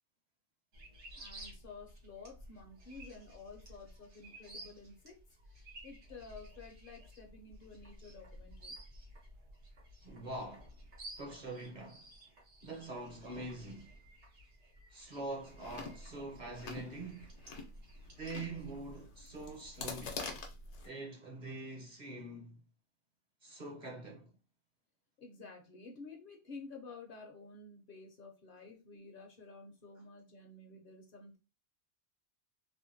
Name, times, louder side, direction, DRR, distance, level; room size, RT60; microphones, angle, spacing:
sound 1, 0.7-18.7, right 1 dB, 80° right, 1.2 m, -54 dB
voice 1, 1.2-5.2 5.4-8.7 25.2-31.4, left 4 dB, 55° left, 0.7 m, -52 dB
voice 2, 10.0-10.7 11.2-12.1 12.6-14.0 14.9-17.3 18.2-20.2 20.8-22.6 23.4-24.3, right 2 dB, 45° right, 0.8 m, -44 dB
Chewing mastication, 15.4-20.9, left 3 dB, 80° left, 1.0 m, -46 dB
3.5 x 2.1 x 2.6 m
omnidirectional pair, 1.2 m